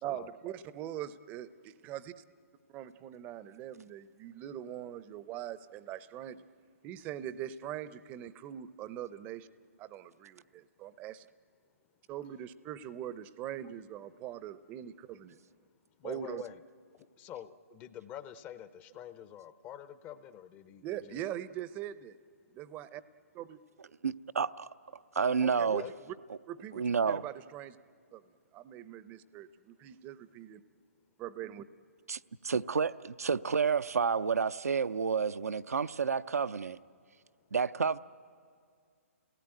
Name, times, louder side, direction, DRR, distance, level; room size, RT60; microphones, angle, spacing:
voice 1, 0.0-2.2 2.7-6.4 6.8-9.5 9.8-11.3 12.1-15.4 16.0-16.4 20.8-22.2 22.5-23.0 23.3-23.6 25.4-26.2 26.5-27.8 28.1-30.6 31.2-31.7, right 11 dB, 20° right, 0.6 m, -42 dB
voice 2, 16.0-16.6 16.9-21.2 25.4-25.9, left 10 dB, 20° left, 0.6 m, -47 dB
voice 3, 24.0-24.5 25.1-25.8 26.7-27.2 32.1-36.8 37.5-38.0, right 5 dB, 85° right, 0.6 m, -30 dB
29.5 x 18.0 x 9.0 m
hypercardioid pair, 145°, 8 cm